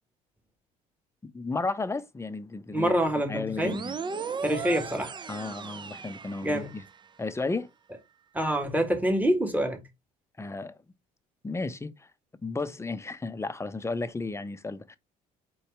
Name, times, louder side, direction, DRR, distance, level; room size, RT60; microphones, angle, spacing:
voice 1, 1.2-3.0 3.3-4.0 5.3-6.8 7.2-7.7 10.4-10.8 11.4-12.1 12.4-15.0, left 3 dB, 15° left, 0.7 m, -33 dB
voice 2, 2.7-3.8 4.4-5.1 6.4-6.7 8.3-9.8, right 1 dB, 10° right, 1.8 m, -26 dB
sound 1, 3.6-7.1, right 5 dB, 25° right, 0.6 m, -37 dB
4.1 x 3.9 x 3.3 m
hypercardioid pair, 65°, 18 cm